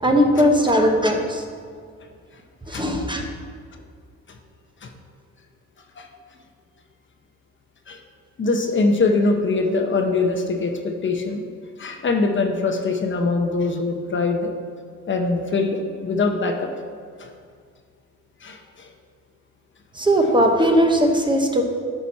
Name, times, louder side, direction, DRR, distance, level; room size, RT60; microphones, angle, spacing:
voice 1, 0.0-1.4 2.7-3.2 19.9-21.6, equal, 15° right, 3 dB, 1.0 m, -18 dB
voice 2, 8.4-11.4 11.8-14.5 15.1-16.7 17.2-17.3 18.4-18.9 20.2-20.3, left 3 dB, 40° left, 4 dB, 0.9 m, -23 dB
10.0 x 6.0 x 4.2 m, 2.1 s
cardioid pair, 90°, 30 cm